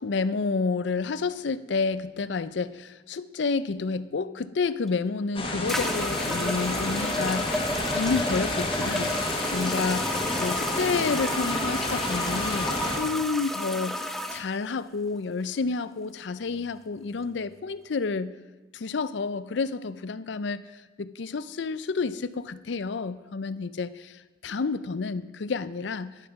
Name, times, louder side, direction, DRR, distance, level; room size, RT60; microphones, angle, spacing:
voice 1, 0.0-7.6 7.9-9.1 9.5-18.3 18.7-20.6 21.0-26.2, left 4 dB, 75° left, 15 dB, 0.5 m, -30 dB
sound 1, 4.9-5.0 5.7-14.4, left 1 dB, ahead, 0.7 m, -31 dB
sound 2, 5.3-13.0, left 1 dB, 30° left, 1.5 m, -30 dB
11.0 x 11.0 x 5.9 m, 1.2 s
head